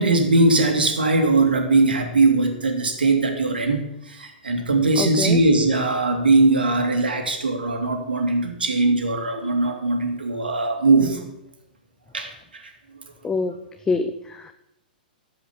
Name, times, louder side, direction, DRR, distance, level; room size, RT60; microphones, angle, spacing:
voice 1, 0.0-11.2 12.1-12.6, right 3 dB, 85° right, 4 dB, 2.4 m, -20 dB
voice 2, 5.0-5.4 13.2-13.6 13.8-14.5, left 4 dB, 15° left, 8 dB, 0.6 m, -25 dB
13.5 x 5.6 x 7.1 m, 0.86 s
hypercardioid pair, 115°, 5 cm